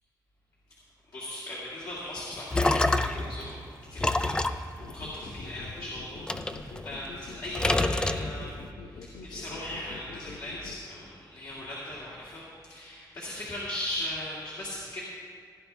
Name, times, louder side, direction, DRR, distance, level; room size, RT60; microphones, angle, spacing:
voice 1, 1.1-3.6 3.9-15.0, left 1 dB, 55° left, -7 dB, 2.2 m, -38 dB
sound 1, 2.2-3.3 4.0-5.7 6.3-7.2 7.5-8.7, left 2 dB, 10° left, 0.3 m, -27 dB
sound 2, 4.8-10.8, left 4 dB, 80° left, 0.8 m, -45 dB
17.0 x 10.5 x 3.4 m, 2.2 s
wide cardioid pair, 170°, 8 cm